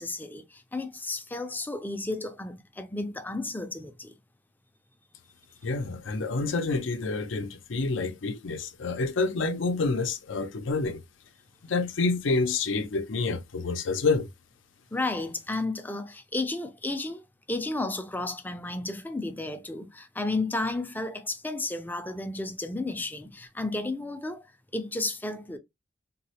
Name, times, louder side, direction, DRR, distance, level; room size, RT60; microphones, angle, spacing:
voice 1, 0.0-4.1 14.9-17.2 17.5-24.4 24.7-25.6, left 2 dB, 10° left, 0.4 m, -32 dB
voice 2, 5.6-11.0 11.6-14.3, left 3 dB, 75° left, 0.6 m, -28 dB
3.8 x 2.0 x 2.8 m
head